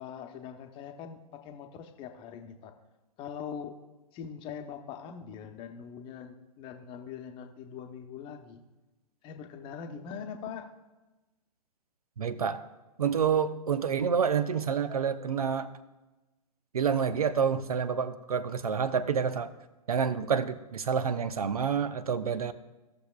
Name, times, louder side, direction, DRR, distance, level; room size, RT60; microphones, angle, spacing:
voice 1, 0.0-2.7 3.2-3.7 4.1-8.6 9.2-10.7, left 7 dB, 25° left, 5 dB, 0.9 m, -42 dB
voice 2, 12.2-12.7 13.0-15.7 16.7-19.5 19.9-22.5, right 7 dB, 70° right, 14 dB, 0.7 m, -28 dB
16.5 x 6.8 x 2.4 m, 1.1 s
figure-of-eight pair, 110°, 20 cm